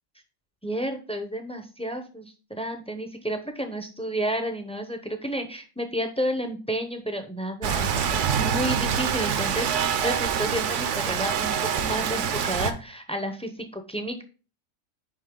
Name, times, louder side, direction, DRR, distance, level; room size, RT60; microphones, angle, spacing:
voice 1, 0.6-14.2, equal, 10° left, 6 dB, 0.4 m, -31 dB
Rain, 7.6-12.7, right 7 dB, 65° right, 1.0 m, -25 dB
6.3 x 5.2 x 3.6 m, 0.36 s
omnidirectional pair, 1.4 m